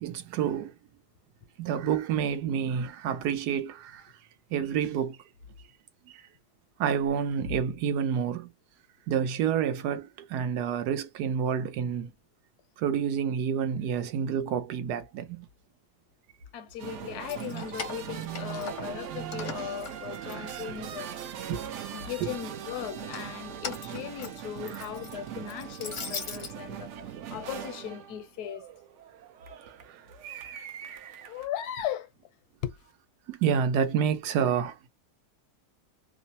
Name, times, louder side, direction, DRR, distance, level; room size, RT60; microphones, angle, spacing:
voice 1, 0.0-0.7 1.6-4.1 4.5-5.2 6.1-6.2 6.8-8.5 9.1-12.1 12.8-15.5 17.5-17.6 18.1-18.6 19.1-19.5 20.3-20.8 21.5-21.7 22.2-22.4 24.7-24.8 27.1-27.2 30.3-31.2 33.3-34.8, right 8 dB, 90° right, 1.2 m, -29 dB
voice 2, 16.5-21.1 21.9-26.9 27.3-28.6 31.3-32.1 32.6-32.8, left 10 dB, 80° left, 1.1 m, -37 dB
sound 1, 16.8-31.5, right 9 dB, 70° right, 0.7 m, -41 dB
Keys jangling, 17.1-19.0 19.3-20.9 21.3-22.1 22.9-26.5, left 5 dB, 45° left, 0.6 m, -41 dB
2.9 x 2.1 x 2.6 m
omnidirectional pair, 1.7 m